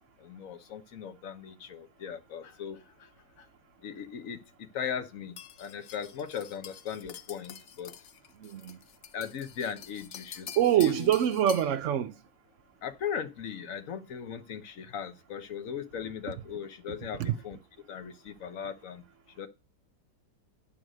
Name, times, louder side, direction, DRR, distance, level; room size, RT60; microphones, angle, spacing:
voice 1, 0.2-3.1 3.4-3.5 3.8-7.9 9.1-10.5 10.8-11.1 12.8-17.6 17.9-19.0 19.4-19.5, left 7 dB, 50° left, 1.3 m, -38 dB
sound 1, 5.4-11.8, left 8 dB, 75° left, 0.6 m, -47 dB
voice 2, 8.4-8.8 10.6-12.1 17.2-17.4, right 10 dB, 90° right, 0.6 m, -25 dB
10.5 x 4.0 x 6.3 m
omnidirectional pair, 2.0 m